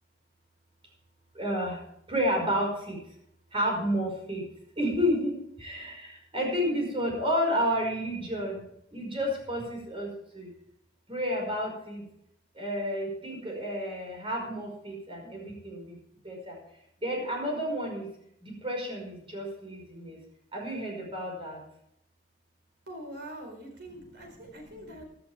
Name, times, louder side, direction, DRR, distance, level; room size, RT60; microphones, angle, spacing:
voice 1, 1.4-1.8 2.1-3.0 3.5-4.4 4.8-8.6 8.9-10.5 11.1-12.0 12.6-16.0 16.2-16.6 17.0-18.1 18.4-20.2 20.5-21.6, equal, 30° right, 0 dB, 5.3 m, -31 dB
voice 2, 22.9-25.0, right 1 dB, 60° right, 3 dB, 4.5 m, -43 dB
16.5 x 11.0 x 3.5 m, 0.74 s
head